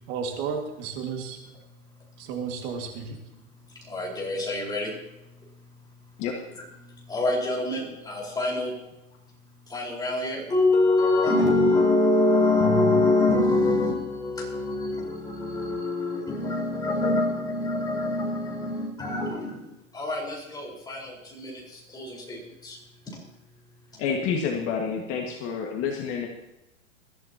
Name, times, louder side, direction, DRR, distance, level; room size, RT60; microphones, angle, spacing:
voice 1, 0.1-1.4 2.2-3.2, right 6 dB, 40° right, 2 dB, 2.2 m, -32 dB
voice 2, 3.8-5.0 5.4-5.5 6.8-8.7 9.7-19.6 19.9-22.8, left 2 dB, 10° left, -3 dB, 4.6 m, -25 dB
voice 3, 24.0-26.3, left 6 dB, 30° left, 1 dB, 1.8 m, -28 dB
21.5 x 14.5 x 2.9 m, 0.91 s
hypercardioid pair, 150°, 42 cm